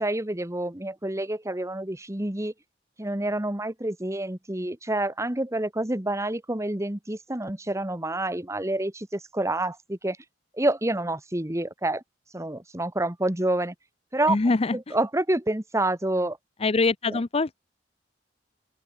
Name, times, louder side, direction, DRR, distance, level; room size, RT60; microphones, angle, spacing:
voice 1, 0.0-2.5 3.0-10.2 10.5-12.0 12.3-13.7 14.1-14.4 14.7-16.4 17.1-17.2, right 1 dB, 15° right, 1.5 m, -28 dB
voice 2, 14.3-14.9 16.6-17.6, left 3 dB, 35° left, 0.6 m, -24 dB
open air
head